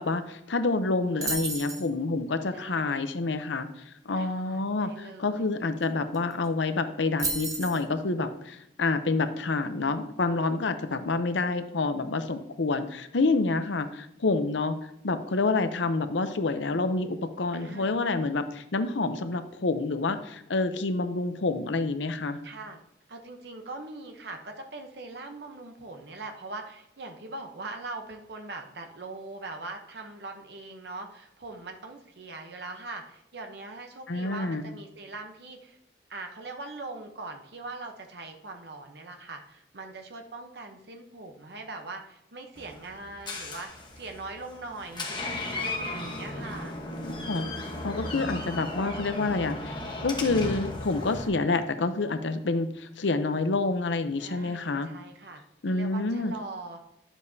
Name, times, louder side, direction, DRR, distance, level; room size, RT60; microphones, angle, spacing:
voice 1, 0.0-3.7 4.1-14.8 15.0-22.4 34.1-34.7 47.0-47.5 47.8-54.9 55.6-56.3, left 3 dB, 85° left, 9 dB, 0.7 m, -28 dB
sound 1, 1.2-1.9 5.8-5.9 6.1-6.5 7.2-7.8, right 3 dB, 20° right, 0.8 m, -32 dB
voice 2, 2.5-3.0 4.1-5.5 17.5-18.0 22.4-22.8 23.1-35.8 36.1-46.7 54.2-56.8, right 3 dB, 65° right, 4 dB, 0.9 m, -41 dB
Door, 42.6-51.3, left 2 dB, 25° left, 1.1 m, -36 dB
10.5 x 7.2 x 2.7 m, 0.80 s
head